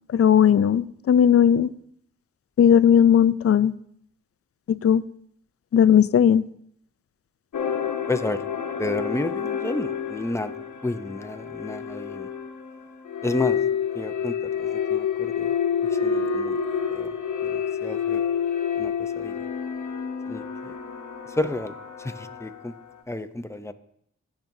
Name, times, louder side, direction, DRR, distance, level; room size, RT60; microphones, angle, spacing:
voice 1, 0.1-1.7 2.6-3.7 4.7-5.0 5.7-6.4, left 8 dB, 55° left, 17 dB, 0.4 m, -17 dB
sound 1, 7.5-22.8, left 7 dB, 80° left, 1.0 m, -29 dB
voice 2, 8.1-8.4 8.8-10.5 10.8-12.3 13.2-13.6 13.9-15.5 15.9-16.6 16.9-17.1 17.4-18.2 18.8-19.4 20.3-20.7 21.3-22.7 23.1-23.7, left 2 dB, 10° left, 9 dB, 0.6 m, -31 dB
18.0 x 6.1 x 2.7 m, 0.69 s
wide cardioid pair, 75°, 29 cm